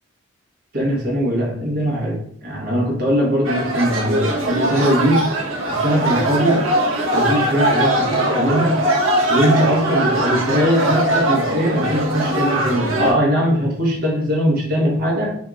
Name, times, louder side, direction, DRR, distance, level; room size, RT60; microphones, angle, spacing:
voice 1, 0.7-5.3 5.7-6.7 7.1-8.8 9.3-15.4, equal, 50° right, -2 dB, 1.2 m, -20 dB
sound 1, 3.4-13.1, right 1 dB, 75° right, 0.8 m, -20 dB
3.0 x 2.7 x 3.6 m, 0.64 s
head